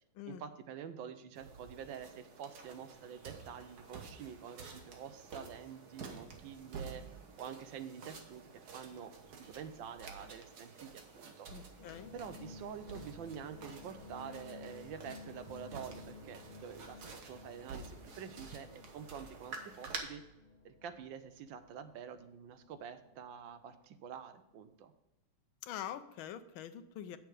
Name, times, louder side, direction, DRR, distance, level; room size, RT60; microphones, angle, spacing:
voice 1, 0.3-7.0 7.4-11.7 12.1-20.2 20.6-24.9, right 8 dB, 70° right, 10 dB, 1.3 m, -47 dB
sound 1, 1.4-20.0, right 4 dB, 50° right, 1.5 m, -50 dB
voice 2, 11.5-12.1 25.6-27.2, left 10 dB, 75° left, 12 dB, 1.3 m, -44 dB
sound 2, 11.8-23.9 24.2-24.6, left 4 dB, 20° left, 2.1 m, -54 dB
8.4 x 6.6 x 4.9 m, 0.92 s
omnidirectional pair, 2.4 m